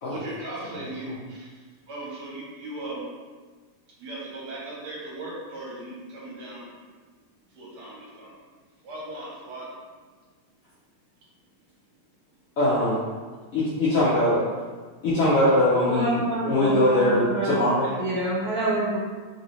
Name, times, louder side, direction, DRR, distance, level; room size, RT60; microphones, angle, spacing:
voice 1, 0.1-3.0 4.0-6.7 7.5-8.3 8.8-9.7 17.8-18.0, right 2 dB, 65° right, -5 dB, 1.3 m, -38 dB
voice 2, 12.6-13.0 13.5-14.4 15.0-17.9, left 1 dB, 70° left, -8 dB, 0.8 m, -22 dB
voice 3, 15.8-17.6 18.0-19.0, right 2 dB, 40° right, -10 dB, 1.1 m, -27 dB
3.1 x 2.6 x 3.0 m, 1.4 s
omnidirectional pair, 2.1 m